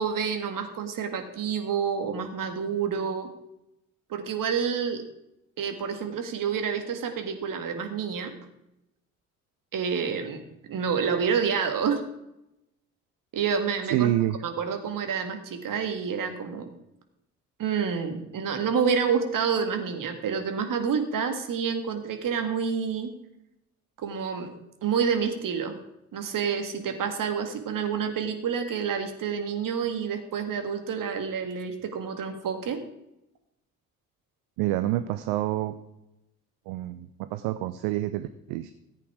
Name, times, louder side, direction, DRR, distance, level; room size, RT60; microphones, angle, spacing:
voice 1, 0.0-3.3 4.1-5.0 5.6-8.4 9.7-10.4 10.7-12.0 13.3-14.1 14.4-16.7 17.6-23.1 24.0-24.5 24.8-25.8 26.1-32.8, right 6 dB, 50° right, 6 dB, 2.0 m, -28 dB
voice 2, 13.9-14.4 34.6-35.7 36.7-38.7, right 14 dB, 65° right, 12 dB, 0.7 m, -27 dB
14.5 x 8.4 x 4.7 m, 0.86 s
figure-of-eight pair, 45°, 42 cm